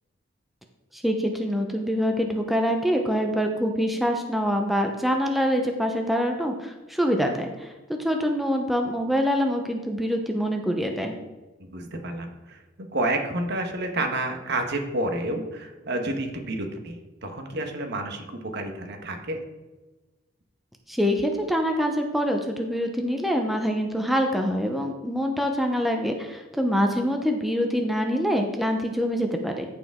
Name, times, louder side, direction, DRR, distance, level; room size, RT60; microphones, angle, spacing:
voice 1, 0.9-11.2 20.9-29.7, equal, ahead, 3 dB, 0.7 m, -25 dB
voice 2, 11.6-17.0 17.2-19.4, right 2 dB, 60° right, 4 dB, 1.2 m, -30 dB
14.5 x 5.0 x 3.6 m, 1.1 s
head